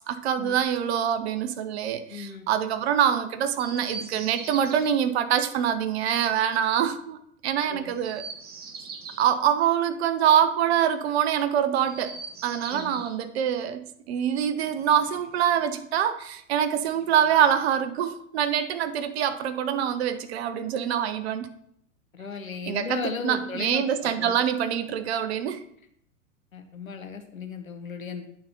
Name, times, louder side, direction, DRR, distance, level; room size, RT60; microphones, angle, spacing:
voice 1, 0.1-7.2 7.4-8.2 9.2-12.2 12.4-21.5 22.7-25.6, right 9 dB, 50° right, 11 dB, 0.7 m, -25 dB
voice 2, 2.1-2.5 7.7-7.9 12.7-13.0 22.1-24.3 26.5-28.3, left 6 dB, 85° left, 6 dB, 1.1 m, -36 dB
Chirp tweet, 3.5-4.9 7.9-9.3 11.7-13.2 14.6-15.7 16.8-17.7, right 4 dB, 25° right, 0.9 m, -42 dB
8.9 x 3.9 x 5.1 m, 0.70 s
figure-of-eight pair, 100°, 40 cm